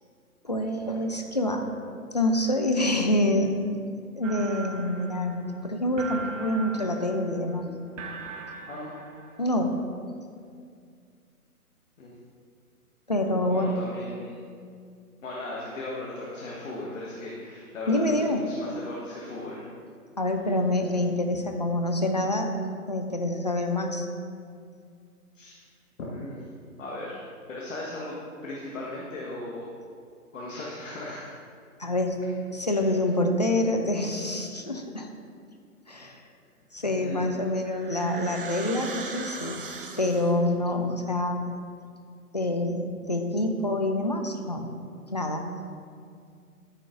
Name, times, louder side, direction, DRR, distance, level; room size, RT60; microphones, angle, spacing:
voice 1, 0.4-1.6 2.1-3.5 4.2-7.7 9.4-9.7 13.1-13.7 17.9-18.4 20.2-22.5 22.9-24.1 31.8-32.2 32.5-35.1 35.9-36.2 36.7-39.6 40.0-41.4 42.3-44.7 45.1-45.4, left 1 dB, 30° left, 3 dB, 0.4 m, -26 dB
sound 1, 4.2-9.5, right 4 dB, 55° right, 1.0 m, -40 dB
voice 2, 13.3-14.4 15.2-19.7 21.3-21.4 25.3-25.6 26.1-26.4 26.8-28.2 28.4-29.6 30.3-31.4 32.7-33.0 37.0-37.3, left 2 dB, 55° left, -4 dB, 1.5 m, -37 dB
sound 2, 37.1-40.5, right 4 dB, 35° right, 0.6 m, -39 dB
13.5 x 4.5 x 3.8 m, 2.2 s
figure-of-eight pair, 145°, 46 cm